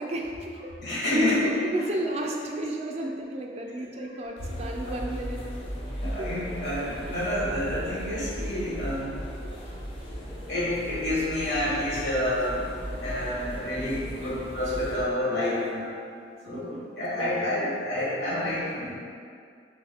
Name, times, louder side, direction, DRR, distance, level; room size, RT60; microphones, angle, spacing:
voice 1, 0.0-5.4 6.0-6.3 16.5-17.7, right 1 dB, 35° right, 1 dB, 0.4 m, -33 dB
voice 2, 0.8-1.5 3.8-3.9 6.0-9.1 10.5-12.7 13.0-15.9 16.4-18.9, left 1 dB, 70° left, -8 dB, 1.3 m, -28 dB
sound 1, 4.4-15.0, equal, 30° left, 0.6 m, -36 dB
3.5 x 3.5 x 3.3 m, 2.3 s
head